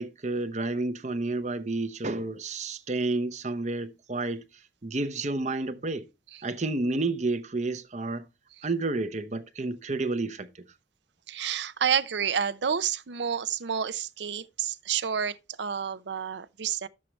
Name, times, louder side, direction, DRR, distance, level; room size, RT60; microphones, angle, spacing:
voice 1, 0.0-6.1 6.4-8.3 8.6-10.6, right 2 dB, 40° right, 0.7 m, -30 dB
voice 2, 11.3-16.9, right 7 dB, 75° right, 0.6 m, -29 dB
11.0 x 7.4 x 3.1 m
head